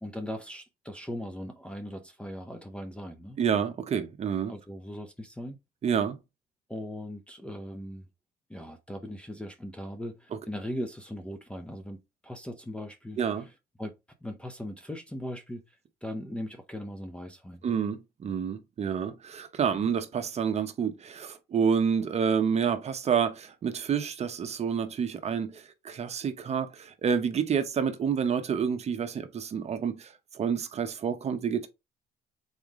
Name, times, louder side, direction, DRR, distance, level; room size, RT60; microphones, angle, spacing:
voice 1, 0.0-3.4 4.5-5.6 6.7-8.1 8.5-13.5 13.8-13.9 14.2-15.8 16.0-17.6, left 1 dB, 5° left, 0.6 m, -39 dB
voice 2, 3.4-4.5 5.8-6.2 13.2-13.4 17.6-31.7, right 7 dB, 40° right, 0.8 m, -28 dB
4.0 x 3.6 x 3.5 m
cardioid pair, 110°, 17 cm